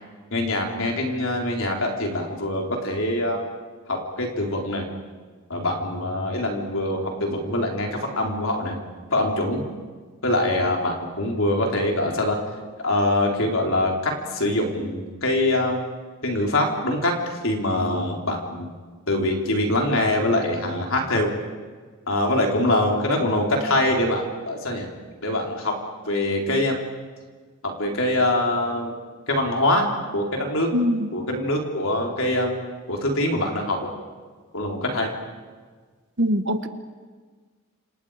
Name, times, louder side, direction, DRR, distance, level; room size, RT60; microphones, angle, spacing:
voice 1, 0.3-3.4 3.9-4.9 5.5-8.8 9.1-9.6 10.2-12.4 12.8-15.8 16.2-17.1 17.4-18.7 19.1-21.3 22.1-24.9 25.2-25.7 26.1-26.8 27.6-28.9 29.3-29.9 30.1-30.7 31.1-33.9 34.5-35.1, left 1 dB, 60° left, 1 dB, 4.0 m, -24 dB
voice 2, 30.7-31.1 36.2-36.7, equal, 55° right, 9 dB, 1.4 m, -22 dB
30.0 x 27.5 x 5.0 m, 1.5 s
head